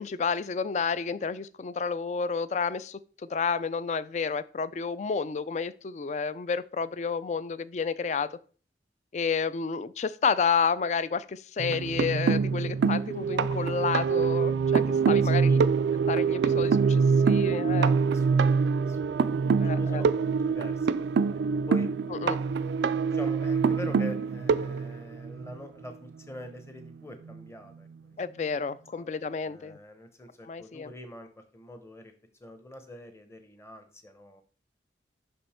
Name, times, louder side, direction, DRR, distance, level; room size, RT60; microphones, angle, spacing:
voice 1, 0.0-3.0 3.3-8.3 9.1-15.6 16.1-18.0 19.6-20.0 22.1-22.4 28.2-29.8 30.5-30.9, left 5 dB, 40° left, 16 dB, 0.3 m, -30 dB
sound 1, 11.6-25.6 26.8-26.9 27.3-27.4, right 5 dB, 75° right, 0.3 m, -25 dB
voice 2, 15.2-15.7 18.1-19.4 19.7-21.4 21.7-21.9 23.0-27.9 28.9-29.1 29.4-32.1 32.4-34.4, left 1 dB, 15° left, 7 dB, 0.9 m, -44 dB
6.0 x 5.3 x 4.3 m, 0.41 s
head